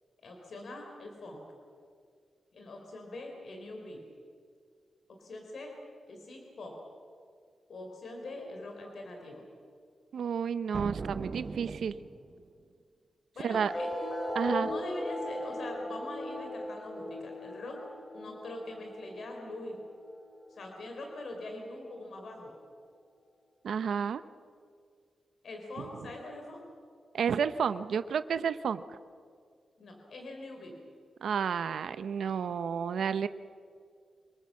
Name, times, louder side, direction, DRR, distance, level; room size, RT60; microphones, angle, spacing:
voice 1, 0.2-1.5 2.5-4.0 5.1-5.8 6.1-6.8 7.7-9.4 13.3-13.9 14.5-17.8 18.1-19.8 20.5-22.5 25.4-26.6 29.8-30.7, left 2 dB, 60° left, 2 dB, 3.9 m, -43 dB
voice 2, 10.1-11.9 13.4-13.7 14.3-14.7 23.6-24.2 27.1-29.0 31.2-33.3, right 7 dB, 80° right, 12 dB, 0.7 m, -31 dB
sound 1, 10.7-12.5, right 4 dB, 40° right, 0.8 m, -39 dB
sound 2, 13.6-20.6, left 1 dB, 20° left, 2.5 m, -38 dB
26.0 x 19.5 x 7.5 m, 2.2 s
wide cardioid pair, 150°, 0 cm